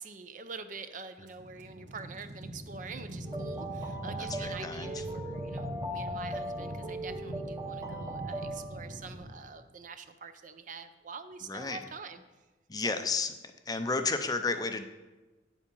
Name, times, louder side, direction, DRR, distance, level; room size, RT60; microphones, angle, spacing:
voice 1, 0.0-12.2 12.8-13.1, right 4 dB, 45° right, 10 dB, 0.6 m, -45 dB
sound 1, 1.3-9.3, right 1 dB, 80° right, 1.4 m, -42 dB
sound 2, 3.3-9.0, right 1 dB, 20° right, 0.9 m, -39 dB
voice 2, 4.2-5.0 11.5-11.8 12.7-13.3 13.7-14.8, left 4 dB, 20° left, 8 dB, 0.5 m, -32 dB
9.3 x 7.2 x 5.4 m, 1.2 s
head